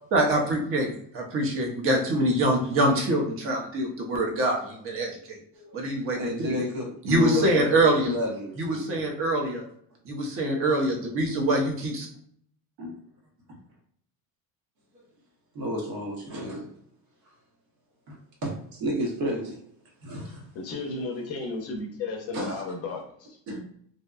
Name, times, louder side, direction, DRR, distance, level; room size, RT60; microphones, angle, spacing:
voice 1, 0.1-5.4 5.7-6.2 7.0-8.1 8.6-9.6 10.1-12.1, right 1 dB, 35° right, 1 dB, 0.6 m, -24 dB
voice 2, 6.1-9.0 12.8-13.0 15.5-16.7 18.1-19.7 20.0-20.5 22.3-22.6 23.5-23.6, equal, 75° right, -1 dB, 1.1 m, -32 dB
voice 3, 20.5-23.4, left 3 dB, 40° left, 2 dB, 0.5 m, -34 dB
2.7 x 2.1 x 2.4 m, 0.66 s
cardioid pair, 145°, 39 cm